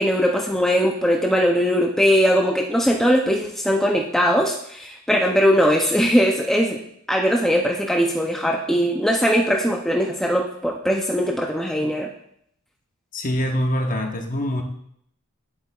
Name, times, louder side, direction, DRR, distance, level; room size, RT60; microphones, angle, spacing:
voice 1, 0.0-6.8 7.1-12.1, equal, ahead, 0 dB, 0.4 m, -20 dB
voice 2, 13.1-14.6, equal, 40° left, 3 dB, 0.9 m, -24 dB
8.2 x 7.8 x 2.3 m, 0.70 s
head